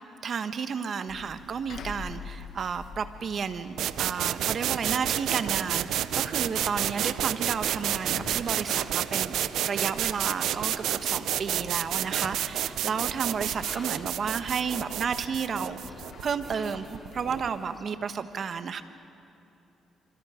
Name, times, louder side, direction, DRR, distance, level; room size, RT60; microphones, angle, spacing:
voice 1, 0.0-9.3 9.7-18.8, right 6 dB, 50° right, 10 dB, 1.2 m, -32 dB
sound 1, 1.1-17.7, left 5 dB, 70° left, 1.4 m, -47 dB
sound 2, 3.8-17.5, right 11 dB, 80° right, 0.6 m, -30 dB
sound 3, 4.6-17.8, left 1 dB, 10° left, 2.8 m, -49 dB
27.0 x 26.0 x 5.1 m, 2.8 s
cardioid pair, 90°, 0 cm